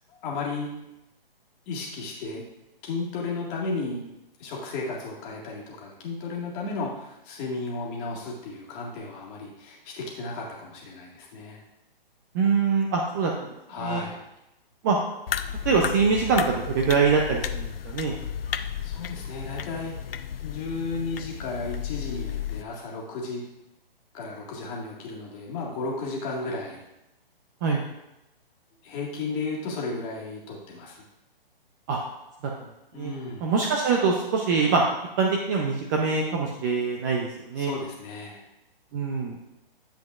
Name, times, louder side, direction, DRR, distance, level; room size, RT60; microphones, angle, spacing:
voice 1, 0.1-0.7 1.7-2.4 2.8-4.0 4.4-11.6 13.7-14.2 18.5-20.0 20.4-23.4 24.1-26.8 28.8-31.0 32.9-33.5 37.6-38.4, left 3 dB, 25° left, -2 dB, 1.8 m, -34 dB
voice 2, 12.3-13.5 13.8-14.0 14.8-15.0 15.7-18.2 27.6-27.8 31.9-32.0 33.0-33.1 33.4-34.8 35.2-37.7 38.9-39.4, right 5 dB, 20° right, 0 dB, 0.5 m, -24 dB
sound 1, 15.3-22.6, left 8 dB, 75° left, 0.5 m, -33 dB
10.0 x 7.5 x 2.4 m, 0.90 s
figure-of-eight pair, 135°, 30 cm